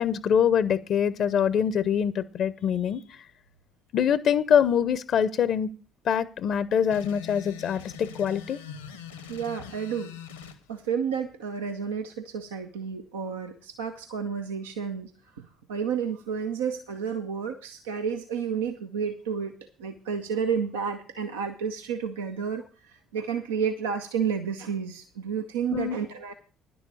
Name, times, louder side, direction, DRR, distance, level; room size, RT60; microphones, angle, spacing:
voice 1, 0.0-3.0 3.9-5.7 6.1-8.6 25.7-26.0, left 8 dB, 55° left, 17 dB, 0.7 m, -24 dB
sound 1, 6.9-10.6, left 8 dB, 85° left, 1.1 m, -42 dB
voice 2, 9.3-10.1 10.7-15.1 15.4-19.5 19.8-26.3, right 7 dB, 80° right, 5 dB, 0.7 m, -31 dB
10.5 x 7.0 x 6.9 m, 0.37 s
hypercardioid pair, 50°, 0 cm